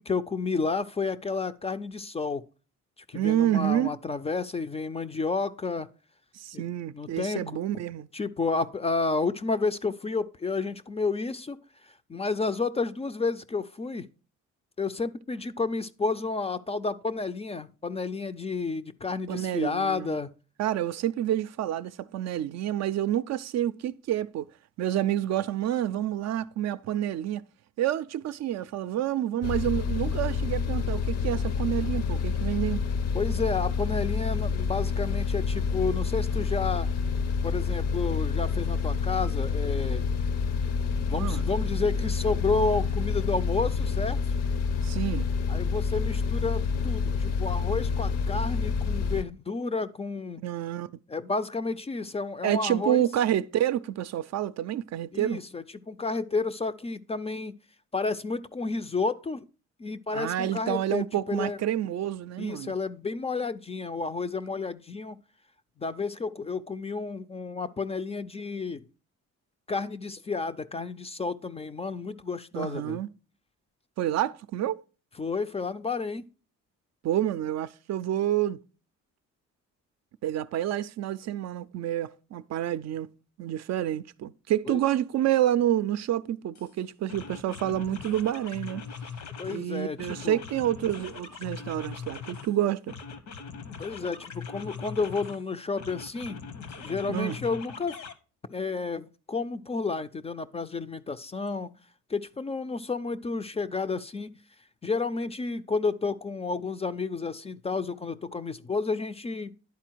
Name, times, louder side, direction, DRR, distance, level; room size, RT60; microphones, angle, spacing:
voice 1, 0.0-2.4 3.1-5.9 6.5-6.6 6.9-7.4 8.1-11.6 12.1-14.1 14.8-20.3 33.1-36.9 37.4-40.0 41.1-44.2 45.5-50.4 51.1-53.0 55.1-57.5 57.9-59.4 59.8-61.6 62.4-65.2 65.8-68.9 69.7-73.0 75.2-76.2 84.7-84.8 89.4-90.4 93.8-96.4 96.8-98.0 98.5-101.7 102.1-104.3 104.8-109.5, left 4 dB, 20° left, 0.4 m, -31 dB
voice 2, 3.1-4.0 6.3-8.1 19.3-20.2 20.6-24.5 24.8-27.4 27.8-32.8 41.1-41.4 44.8-45.3 50.4-50.9 52.4-55.4 60.1-62.7 72.5-73.1 74.0-74.8 77.0-78.6 80.2-83.1 83.4-88.8 89.5-92.9 97.1-97.4, right 12 dB, 60° right, 0.4 m, -28 dB
sound 1, 29.4-49.2, left 5 dB, 55° left, 0.6 m, -28 dB
sound 2, 86.5-86.7 87.1-89.6 90.0-92.5 92.9-95.4 95.8-98.1, left 5 dB, 70° left, 1.0 m, -41 dB
10.5 x 4.1 x 4.5 m
cardioid pair, 90°, 30 cm